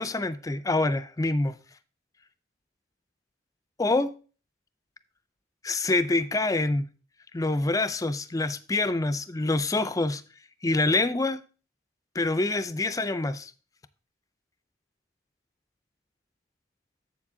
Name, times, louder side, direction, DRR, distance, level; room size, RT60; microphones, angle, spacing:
voice 1, 0.0-1.5 3.8-4.1 5.6-6.9 7.3-10.2 10.6-11.4 12.2-13.5, left 2 dB, 20° left, 0.4 m, -26 dB
7.3 x 7.3 x 3.6 m
head